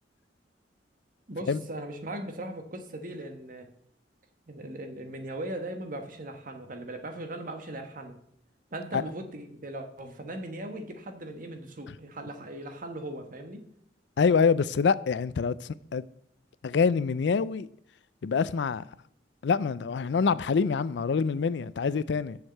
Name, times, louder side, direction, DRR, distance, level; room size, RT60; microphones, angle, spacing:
voice 1, 1.3-3.7 4.5-8.1 8.7-13.6, right 1 dB, 50° right, 1.4 m, -39 dB
voice 2, 14.2-16.0 16.6-17.7 18.2-18.8 19.4-22.4, left 5 dB, 70° left, 0.4 m, -25 dB
7.2 x 6.5 x 7.7 m
head